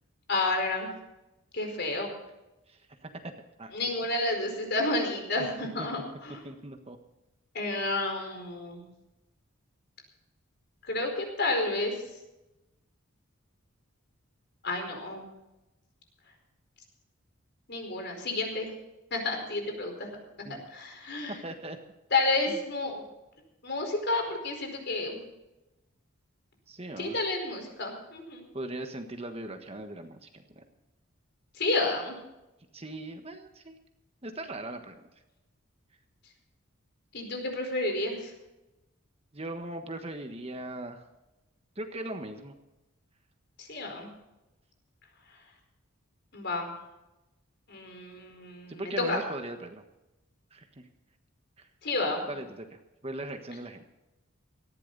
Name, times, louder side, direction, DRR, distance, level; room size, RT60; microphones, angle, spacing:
voice 1, 0.3-0.9 1.5-2.1 3.7-6.4 7.5-8.9 10.8-11.9 14.6-15.2 17.7-18.7 19.1-20.1 20.7-21.4 22.1-23.0 23.6-25.2 27.0-28.4 31.6-32.1 37.1-38.3 43.6-44.1 46.3-46.7 47.7-49.2 51.8-52.3, left 2 dB, 55° left, 4 dB, 4.6 m, -30 dB
voice 2, 2.7-3.3 3.6-3.7 5.4-5.5 5.8-5.9 6.4-7.0 20.4-20.6 21.4-21.8 22.5-22.6 26.7-27.2 28.5-30.6 32.7-33.8 34.2-35.0 39.3-41.0 41.8-42.5 48.7-49.8 50.5-50.9 51.6-51.7 52.3-53.8, right 1 dB, 30° right, 6 dB, 1.4 m, -39 dB
19.0 x 14.5 x 4.1 m, 0.97 s
head